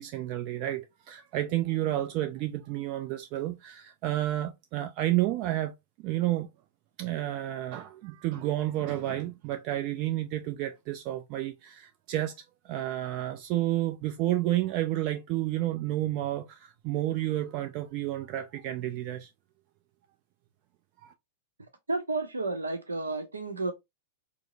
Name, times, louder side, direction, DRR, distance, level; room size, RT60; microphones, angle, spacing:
voice 1, 0.0-5.7 6.0-6.5 7.0-12.3 12.6-19.3 21.0-21.1, right 14 dB, 40° right, 0.4 m, -30 dB
voice 2, 21.9-23.7, right 3 dB, 75° right, 0.8 m, -31 dB
4.7 x 2.0 x 2.5 m
figure-of-eight pair, 95°, 0 cm